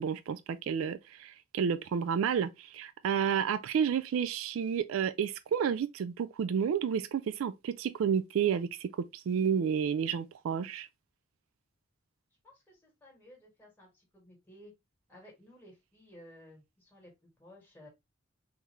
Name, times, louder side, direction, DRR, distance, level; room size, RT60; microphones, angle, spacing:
voice 1, 0.0-10.9, right 7 dB, 80° right, 0.3 m, -31 dB
voice 2, 12.4-14.7 15.1-17.9, left 1 dB, 10° left, 1.8 m, -56 dB
3.9 x 2.7 x 2.9 m
head